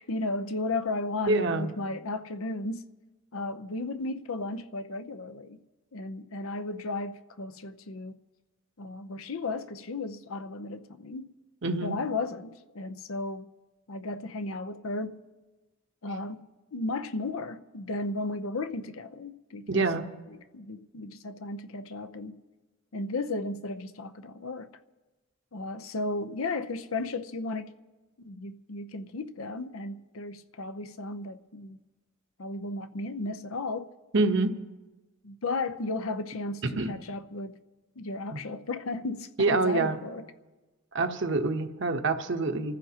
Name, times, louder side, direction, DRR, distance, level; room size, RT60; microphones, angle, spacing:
voice 1, 0.0-2.8 3.3-5.6 5.9-8.2 8.8-11.3 11.8-13.5 13.9-15.3 16.0-16.5 16.7-19.8 20.5-22.4 22.9-24.7 25.5-27.7 28.2-31.8 32.4-33.9 35.2-37.6 38.0-40.2, left 2 dB, 75° left, 0.7 m, -34 dB
voice 2, 1.3-1.7 11.6-12.0 19.7-20.1 34.1-34.6 36.6-36.9 38.3-38.4 39.4-40.0 40.9-42.8, right 3 dB, 60° right, 1.0 m, -26 dB
28.5 x 14.5 x 2.9 m
head